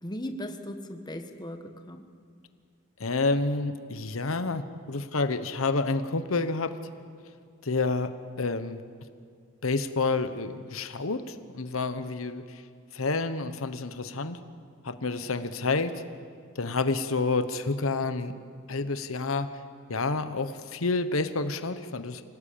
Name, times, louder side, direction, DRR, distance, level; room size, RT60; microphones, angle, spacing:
voice 1, 0.0-2.0, equal, 20° left, 6 dB, 1.4 m, -37 dB
voice 2, 3.0-6.8 7.6-8.8 9.6-12.6 12.9-14.4 14.8-16.0 16.5-18.3 18.7-19.5 19.9-22.2, left 3 dB, 90° left, 10 dB, 1.1 m, -29 dB
26.0 x 18.0 x 8.7 m, 2.2 s
head